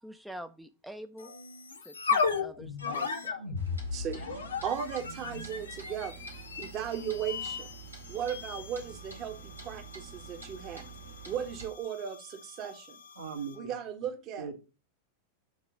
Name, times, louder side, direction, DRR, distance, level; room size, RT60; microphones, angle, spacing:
voice 1, 0.0-1.3 1.8-3.4, equal, ahead, 0.5 m, -46 dB
sound 1, 1.2-13.7, left 5 dB, 75° left, 1.1 m, -37 dB
Clock, 3.6-11.7, right 5 dB, 85° right, 1.8 m, -48 dB
voice 2, 3.9-6.2 6.6-7.7 8.1-10.9 11.2-13.0 13.5-14.5, right 8 dB, 35° right, 1.2 m, -36 dB
voice 3, 13.2-13.7 14.4-14.5, right 6 dB, 70° right, 1.7 m, -39 dB
7.2 x 3.8 x 6.1 m
figure-of-eight pair, 90°, 0 cm